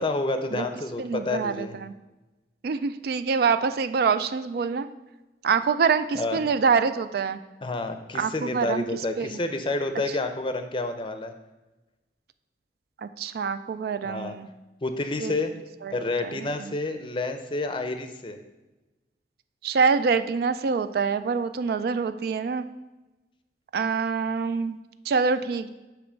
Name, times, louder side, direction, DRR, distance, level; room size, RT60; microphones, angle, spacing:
voice 1, 0.0-1.8 6.1-6.5 7.6-11.3 14.0-14.4 14.8-15.5 15.9-18.4, left 2 dB, 30° left, 8 dB, 0.5 m, -29 dB
voice 2, 1.0-1.9 2.6-4.9 5.4-7.4 8.1-8.8 9.2-9.3 13.0-14.5 15.2-15.3 15.8-15.9 16.2-16.7 19.6-22.6 23.7-24.8 25.1-25.7, right 5 dB, 55° right, 11 dB, 0.3 m, -25 dB
8.3 x 3.0 x 6.2 m, 1.1 s
head